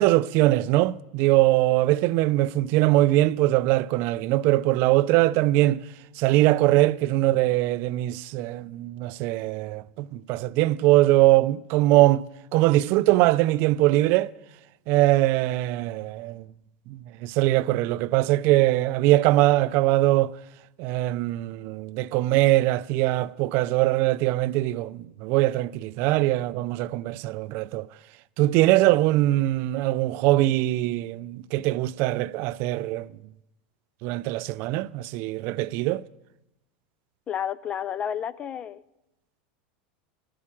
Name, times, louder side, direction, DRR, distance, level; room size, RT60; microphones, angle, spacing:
voice 1, 0.0-5.8 6.2-12.2 12.5-14.3 14.9-16.4 16.9-20.3 20.8-27.9 28.4-33.1 34.0-36.0, right 16 dB, 50° right, 0.4 m, -22 dB
voice 2, 37.3-38.8, left 9 dB, 25° left, 0.4 m, -31 dB
12.5 x 8.4 x 7.3 m
supercardioid pair, 140°, 5 cm